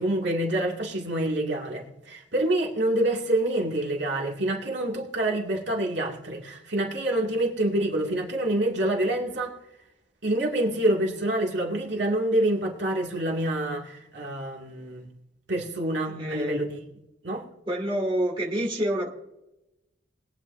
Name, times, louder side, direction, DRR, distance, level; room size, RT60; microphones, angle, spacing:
voice 1, 0.0-9.6 10.2-15.1 15.5-16.8 17.2-17.4, right 1 dB, 65° right, 2.2 m, -27 dB
voice 2, 16.1-16.6 17.7-19.1, equal, 25° right, 2.3 m, -27 dB
21.5 x 9.0 x 2.6 m
head